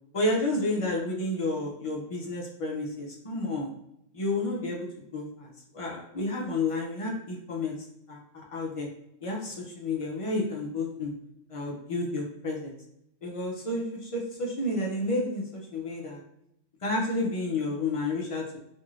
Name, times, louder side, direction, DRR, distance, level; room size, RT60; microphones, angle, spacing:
voice 1, 0.1-3.7 4.1-7.8 8.1-8.9 9.2-11.1 11.5-12.7 13.2-16.2 16.8-18.4, left 2 dB, 55° left, -1 dB, 0.3 m, -31 dB
3.1 x 2.6 x 2.4 m, 0.78 s
omnidirectional pair, 1.3 m